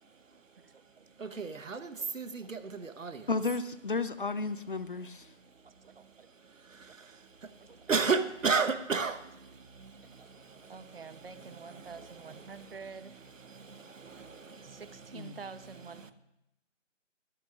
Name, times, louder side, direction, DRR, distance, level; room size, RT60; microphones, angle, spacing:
voice 1, 0.0-0.7 1.0-3.3 5.3-12.7 13.4-15.0 16.0-16.1, right 5 dB, 85° right, 1.0 m, -36 dB
voice 2, 0.6-1.1 1.3-1.4 2.0-2.1 5.6-6.3 6.9-7.0 7.6-7.9 10.1-13.1 13.9-14.3 14.6-16.1, right 5 dB, 50° right, 0.7 m, -49 dB
voice 3, 3.3-5.3 15.1-15.3, left 3 dB, 45° left, 0.5 m, -33 dB
23.0 x 8.1 x 2.4 m
figure-of-eight pair, 160°, 38 cm